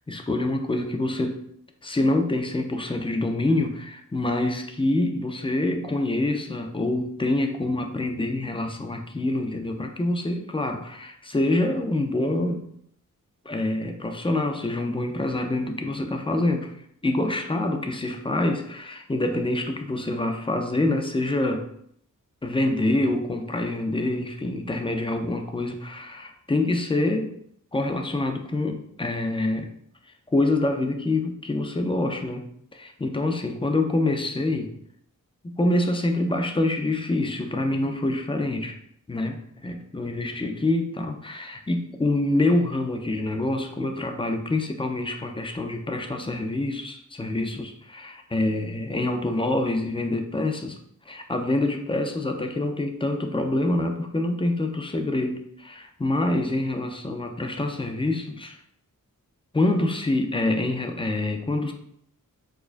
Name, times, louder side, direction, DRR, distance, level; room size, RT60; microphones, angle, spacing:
voice 1, 0.1-1.5 1.8-12.6 13.5-16.7 17.0-21.7 22.4-27.3 27.7-29.7 30.3-32.4 32.7-34.7 35.4-38.8 39.1-50.8 51.1-58.6 59.5-61.7, left 2 dB, 15° left, 4 dB, 0.4 m, -26 dB
4.4 x 2.2 x 2.5 m, 0.70 s
wide cardioid pair, 80°, 33 cm